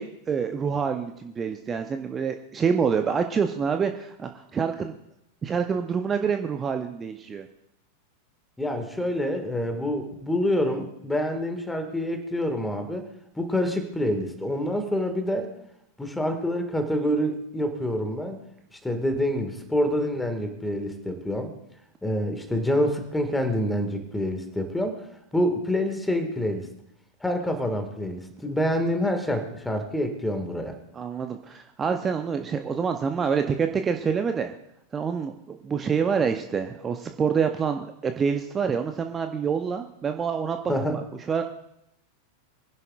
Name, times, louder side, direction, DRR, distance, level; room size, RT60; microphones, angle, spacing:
voice 1, 0.0-4.9 5.4-7.5 30.9-34.5 34.9-41.4, right 6 dB, 20° right, 6 dB, 0.7 m, -27 dB
voice 2, 8.6-13.1 13.4-15.5 16.0-18.4 18.7-21.5 22.0-25.0 25.3-26.7 27.2-30.8 40.7-41.0, equal, 5° left, 6 dB, 1.9 m, -27 dB
23.5 x 11.0 x 2.5 m, 0.81 s
figure-of-eight pair, 90°, 0 cm